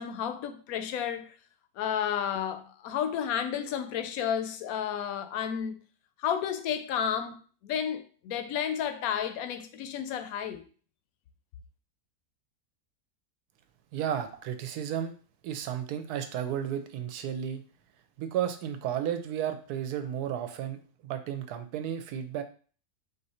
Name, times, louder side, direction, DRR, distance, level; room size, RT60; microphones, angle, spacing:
voice 1, 0.0-1.3 1.8-5.7 6.2-10.7, left 8 dB, 75° left, 1.0 m, -32 dB
voice 2, 13.9-15.1 15.4-17.6 18.2-22.4, right 10 dB, 85° right, 1.1 m, -33 dB
3.8 x 2.7 x 4.2 m
omnidirectional pair, 1.6 m